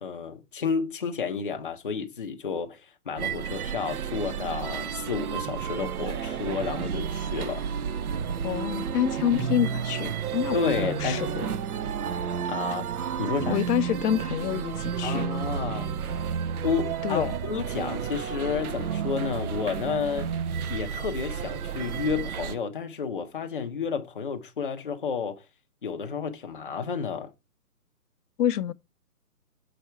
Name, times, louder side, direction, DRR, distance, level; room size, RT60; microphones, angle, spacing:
voice 1, 0.0-7.6 9.3-9.4 10.5-11.3 12.4-12.9 13.2-13.6 15.0-15.9 16.6-20.3 20.7-25.4 25.8-27.3, left 6 dB, 35° left, 0.5 m, -31 dB
Westminster - Busker in station, 3.2-22.5, right 7 dB, 70° right, 0.6 m, -31 dB
voice 2, 8.4-11.5 13.5-15.2 17.0-17.3 28.4-28.7, left 10 dB, 80° left, 0.5 m, -27 dB
5.7 x 4.1 x 4.5 m
hypercardioid pair, 160°, 46 cm